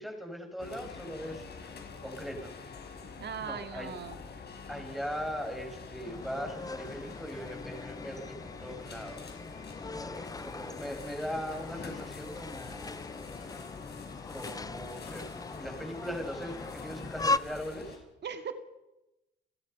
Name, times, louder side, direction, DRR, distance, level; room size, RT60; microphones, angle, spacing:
voice 1, 0.0-2.5 3.4-3.9 4.7-9.2 9.9-13.0 13.4-13.5 14.3-18.0, equal, ahead, 4 dB, 6.8 m, -40 dB
sound 1, 0.6-18.0, left 5 dB, 55° left, 5.4 m, -46 dB
voice 2, 3.2-4.2 18.2-18.5, right 7 dB, 60° right, 8 dB, 2.6 m, -38 dB
sound 2, 6.0-17.4, left 3 dB, 20° left, 0.8 m, -39 dB
29.5 x 16.0 x 5.7 m, 0.94 s
cardioid pair, 85°, 20 cm